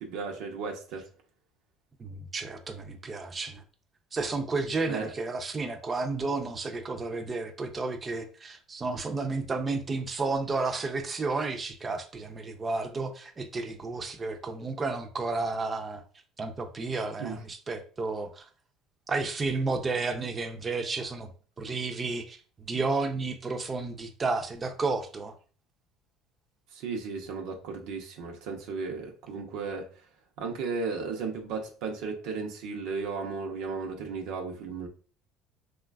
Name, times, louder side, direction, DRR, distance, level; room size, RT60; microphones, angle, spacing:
voice 1, 0.0-1.1 4.9-5.1 17.2-17.4 21.6-21.7 26.7-29.9 30.4-34.9, right 4 dB, 75° right, 2 dB, 0.6 m, -35 dB
voice 2, 2.0-3.6 4.1-16.0 16.4-18.5 19.1-21.3 21.6-22.4 22.7-25.3, right 3 dB, 25° right, 6 dB, 0.5 m, -32 dB
3.1 x 2.2 x 2.3 m, 0.40 s
supercardioid pair, 100°, 0 cm